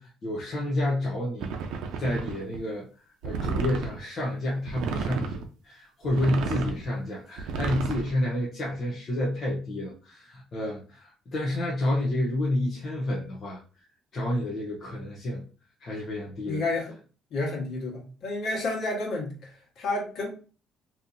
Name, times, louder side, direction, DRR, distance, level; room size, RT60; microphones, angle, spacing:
voice 1, 0.0-1.5 2.0-2.9 3.2-13.6 14.1-15.4 15.8-16.6, left 1 dB, 30° left, -4 dB, 0.6 m, -29 dB
sound 1, 1.4-2.6 3.2-4.0 4.6-5.4 6.0-6.8 7.4-8.1, right 5 dB, 80° right, 0.6 m, -31 dB
voice 2, 16.5-16.9 17.3-20.3, left 2 dB, 50° left, -2 dB, 1.4 m, -30 dB
4.0 x 2.8 x 2.6 m, 0.38 s
cardioid pair, 180°, 0 cm